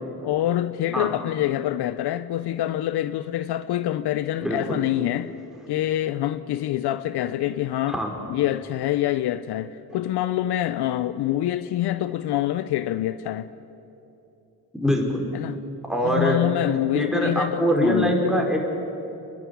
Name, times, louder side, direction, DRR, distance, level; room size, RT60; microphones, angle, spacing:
voice 1, 0.2-5.3 5.7-8.0 8.3-13.5 15.3-15.6 16.0-18.5, left 13 dB, 70° left, 0.7 m, -26 dB
voice 2, 4.4-4.8 7.9-8.1 14.8-15.2 15.9-16.4 16.9-18.6, equal, ahead, 5.1 m, -23 dB
29.0 x 11.0 x 8.5 m
supercardioid pair, 55°, 42 cm